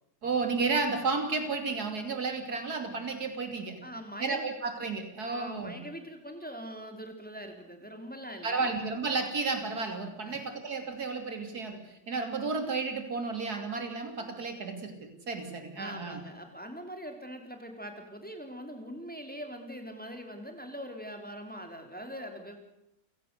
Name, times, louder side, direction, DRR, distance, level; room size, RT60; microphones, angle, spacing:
voice 1, 0.2-3.8 4.2-5.8 8.4-16.2, right 4 dB, 85° right, 6 dB, 3.4 m, -32 dB
voice 2, 3.8-4.5 5.3-8.7 10.2-10.4 15.8-22.6, equal, 5° left, 4 dB, 3.1 m, -42 dB
29.0 x 17.0 x 6.7 m, 0.84 s
omnidirectional pair, 1.6 m